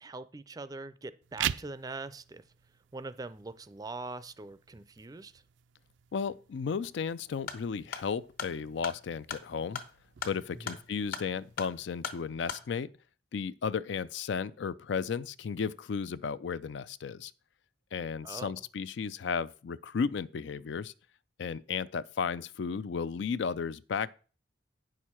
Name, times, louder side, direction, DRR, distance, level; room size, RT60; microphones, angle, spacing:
voice 1, 0.0-2.4 2.9-5.4 10.5-10.8 18.2-18.6, right 3 dB, 20° right, 0.4 m, -42 dB
sound 1, 1.2-12.2, right 10 dB, 80° right, 0.4 m, -44 dB
voice 2, 6.1-9.8 10.2-12.9 13.3-17.3 17.9-20.9 21.4-24.1, left 6 dB, 75° left, 0.4 m, -34 dB
sound 2, 7.4-12.7, left 6 dB, 55° left, 1.1 m, -41 dB
9.2 x 6.5 x 4.4 m
head